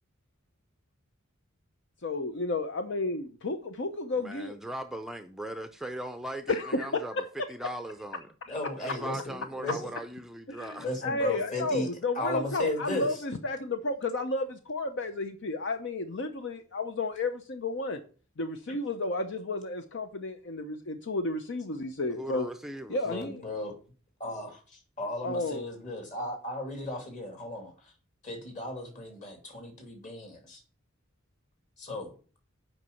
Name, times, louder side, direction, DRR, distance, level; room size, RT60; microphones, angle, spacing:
voice 1, 2.0-4.6 6.5-7.5 8.8-8.9 10.5-18.0 18.4-22.5 22.9-23.4 25.2-25.7, left 2 dB, 65° left, 0.8 m, -32 dB
voice 2, 4.2-7.1 7.5-8.3 8.8-10.9 22.1-23.0, right 1 dB, ahead, 0.5 m, -39 dB
voice 3, 8.5-9.9 10.8-11.9 12.1-13.1 23.0-23.8 24.2-27.9 28.2-30.6 31.8-32.1, left 1 dB, 40° left, 2.7 m, -35 dB
7.9 x 5.4 x 6.9 m
head